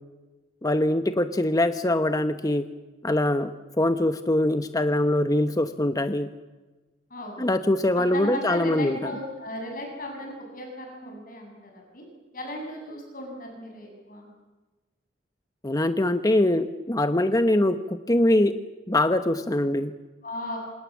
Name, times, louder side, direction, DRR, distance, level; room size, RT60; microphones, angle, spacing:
voice 1, 0.6-2.7 3.0-3.5 3.8-6.3 7.4-9.1 15.6-18.6 18.9-19.9, left 1 dB, 20° left, 9 dB, 1.0 m, -23 dB
voice 2, 7.1-7.4 7.9-12.1 12.3-14.3 20.2-20.6, left 1 dB, 50° left, 1 dB, 7.6 m, -36 dB
28.0 x 26.5 x 7.4 m, 1.2 s
head